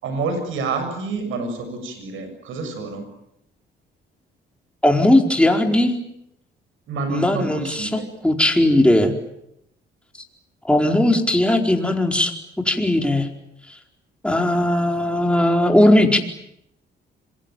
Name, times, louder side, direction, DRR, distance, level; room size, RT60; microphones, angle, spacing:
voice 1, 0.0-3.0 6.9-8.1, right 4 dB, 80° right, 8 dB, 7.2 m, -28 dB
voice 2, 4.8-5.9 7.1-9.1 10.6-12.3 12.6-13.3 14.2-16.2, left 1 dB, 5° left, 3 dB, 4.6 m, -18 dB
26.5 x 23.5 x 9.2 m, 0.79 s
cardioid pair, 90°, 20 cm